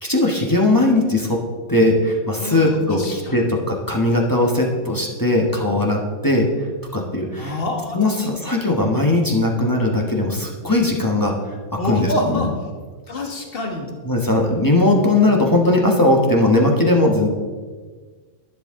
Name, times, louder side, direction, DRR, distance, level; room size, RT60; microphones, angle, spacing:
voice 1, 0.0-1.4 1.7-6.5 6.9-7.6 7.9-11.3 11.8-12.5 14.0-17.3, left 2 dB, 15° left, -1 dB, 1.2 m, -19 dB
voice 2, 2.4-3.5 7.4-8.4 11.8-12.5 13.1-13.9, left 1 dB, 45° left, 2 dB, 1.7 m, -27 dB
11.5 x 10.0 x 3.7 m, 1.5 s
omnidirectional pair, 1.4 m